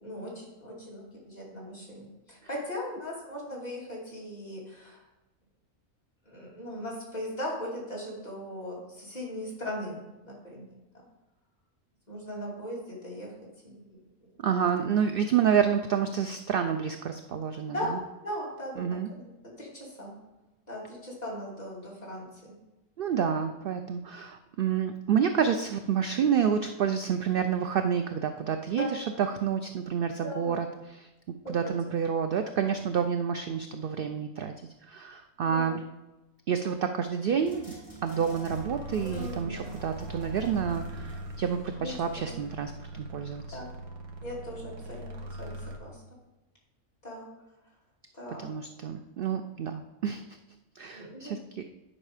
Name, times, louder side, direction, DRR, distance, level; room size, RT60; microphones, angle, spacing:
voice 1, 0.0-5.0 6.3-10.7 10.9-11.1 12.1-13.3 13.6-13.8 17.7-20.1 20.7-22.3 28.7-28.9 30.2-30.6 31.4-31.7 35.4-35.7 39.0-39.6 41.8-42.4 43.5-43.7 44.2-45.1 45.4-46.0 47.0-47.3 48.1-48.4 50.9-51.4, left 1 dB, 30° left, -5 dB, 2.7 m, -38 dB
voice 2, 14.4-18.0 18.8-19.1 23.0-31.1 31.5-34.5 34.8-35.8 36.5-37.7 38.0-43.6 48.3-50.2 50.7-51.6, right 7 dB, 70° right, 7 dB, 0.5 m, -29 dB
sound 1, 37.4-42.4, right 3 dB, 20° right, 3.7 m, -48 dB
sound 2, 38.5-45.8, right 1 dB, 90° right, 1.6 m, -41 dB
10.0 x 5.4 x 4.9 m, 1.0 s
omnidirectional pair, 1.5 m